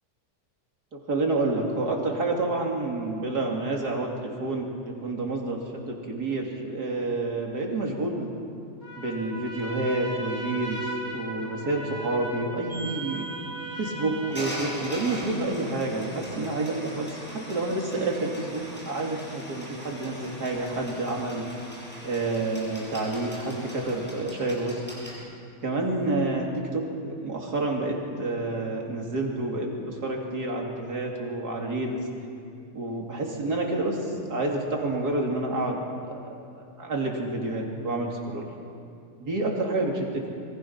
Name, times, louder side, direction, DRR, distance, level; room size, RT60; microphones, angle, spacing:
voice 1, 0.9-8.3 9.0-10.8 11.1-13.3 13.8-21.5 22.0-25.3 25.6-32.0 32.7-35.8 36.0-36.2 36.5-38.5 39.2-39.9, right 2 dB, 75° right, 0 dB, 3.3 m, -29 dB
Trumpet, 8.8-15.3, right 1 dB, 40° right, 3.5 m, -38 dB
sound 1, 12.7-25.1, equal, 5° left, 6.2 m, -40 dB
24.0 x 23.5 x 5.9 m, 2.5 s
omnidirectional pair, 1.7 m